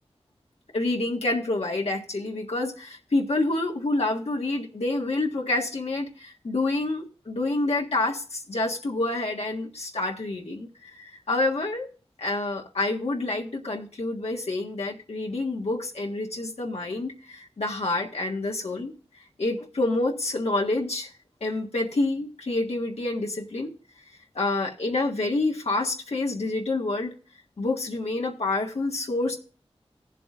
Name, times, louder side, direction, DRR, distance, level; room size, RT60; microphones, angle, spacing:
voice 1, 0.7-11.9 12.2-18.9 19.4-21.1 21.4-23.7 24.3-27.1 27.6-29.4, left 2 dB, 80° left, 0 dB, 1.6 m, -28 dB
19.0 x 7.5 x 2.5 m, 0.39 s
wide cardioid pair, 50°, 11 cm